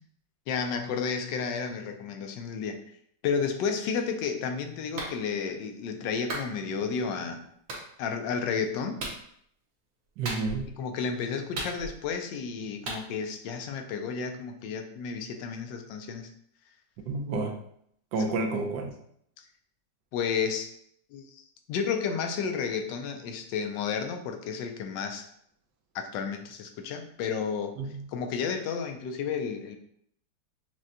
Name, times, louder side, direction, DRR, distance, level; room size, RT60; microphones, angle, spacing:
voice 1, 0.5-2.8 3.2-7.4 8.0-9.0 10.8-16.3 19.4-19.5 20.1-20.7 21.1-25.3 25.9-27.7 28.1-29.8, left 6 dB, 90° left, 5 dB, 1.3 m, -32 dB
Clapping, 5.0-5.1 6.3-6.5 7.7-7.8 9.0-9.2 10.2-10.7 11.5-12.1 12.9-13.0, right 2 dB, 55° right, 1.1 m, -35 dB
voice 2, 10.2-10.7 17.1-17.6 18.1-18.9 27.8-28.1, right 3 dB, 75° right, 2 dB, 1.3 m, -30 dB
6.1 x 2.2 x 2.7 m, 0.69 s
omnidirectional pair, 1.9 m